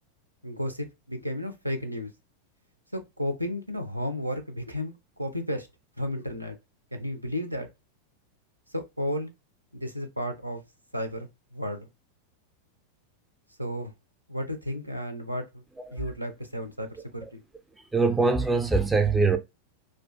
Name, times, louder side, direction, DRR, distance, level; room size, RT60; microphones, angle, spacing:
voice 1, 0.4-2.1 2.9-5.7 6.0-6.6 6.9-7.7 8.7-9.3 9.7-10.6 10.9-11.9 13.6-13.9 14.3-15.5 15.9-17.4, equal, 90° right, 0.4 m, -33 dB
voice 2, 17.7-19.4, right 4 dB, 10° right, 0.3 m, -23 dB
2.4 x 2.2 x 2.3 m
figure-of-eight pair, 90°, 0 cm